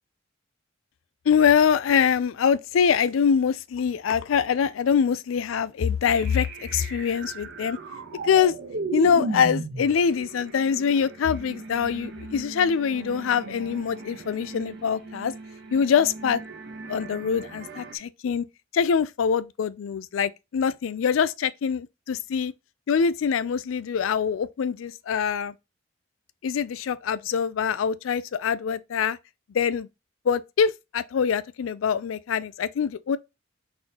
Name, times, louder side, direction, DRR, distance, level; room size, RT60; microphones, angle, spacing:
voice 1, 1.3-7.8 8.2-8.5 8.9-15.3 15.7-16.4 16.9-18.4 18.7-22.5 22.9-25.5 26.4-29.2 29.5-29.9 30.3-33.2, left 7 dB, 80° left, 0.4 m, -24 dB
sound 1, 6.1-18.0, right 3 dB, 60° right, 1.0 m, -37 dB
4.0 x 3.9 x 2.8 m
head